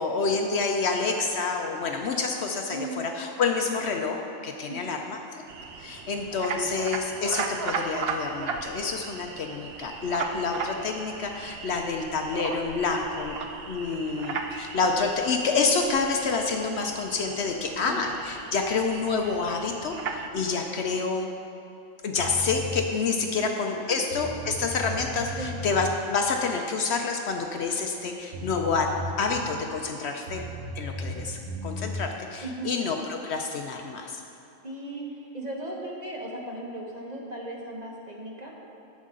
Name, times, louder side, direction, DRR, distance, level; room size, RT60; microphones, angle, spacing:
voice 1, 0.0-5.2 5.8-13.4 13.7-21.3 22.0-30.4 30.7-34.2, left 4 dB, 65° left, 3 dB, 0.8 m, -28 dB
voice 2, 2.7-3.0 4.7-5.0 17.8-18.0 23.3-23.4 23.9-24.0 25.4-25.6 32.4-32.7 34.6-35.1 35.3-38.5, right 1 dB, 35° right, -2 dB, 1.1 m, -36 dB
sound 1, 5.5-20.3, right 4 dB, 60° right, 0.8 m, -36 dB
sound 2, 22.2-22.7 23.8-23.9 24.1-25.8 27.9-28.0 28.3-29.5 30.3-31.9, left 1 dB, 80° right, 2.1 m, -36 dB
12.0 x 7.4 x 3.7 m, 2.8 s
omnidirectional pair, 1.3 m